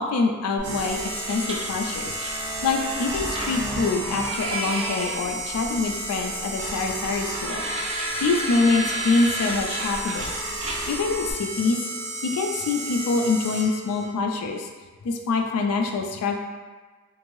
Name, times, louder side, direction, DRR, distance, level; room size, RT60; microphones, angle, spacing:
voice 1, 0.0-10.3 10.9-11.8 12.2-14.7 15.0-16.4, left 3 dB, 85° left, 3 dB, 0.4 m, -25 dB
sound 1, 0.6-11.3, right 1 dB, 25° right, 0.4 m, -34 dB
sound 2, 0.6-14.0, right 2 dB, 75° right, 0.6 m, -32 dB
3.0 x 2.6 x 2.6 m, 1.4 s
head